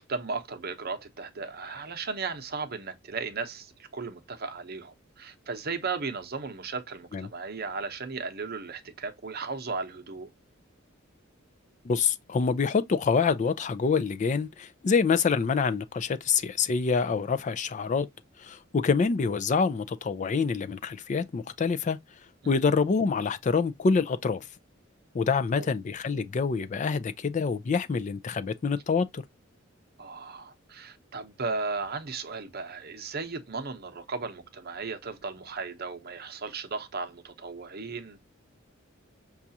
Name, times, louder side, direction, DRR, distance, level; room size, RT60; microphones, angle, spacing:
voice 1, 0.0-10.3 22.4-22.6 25.6-25.7 30.0-38.2, right 4 dB, 50° right, 0.8 m, -36 dB
voice 2, 11.8-18.1 18.4-22.0 22.5-24.5 25.1-29.2, left 5 dB, 40° left, 0.4 m, -26 dB
5.9 x 2.4 x 2.6 m
head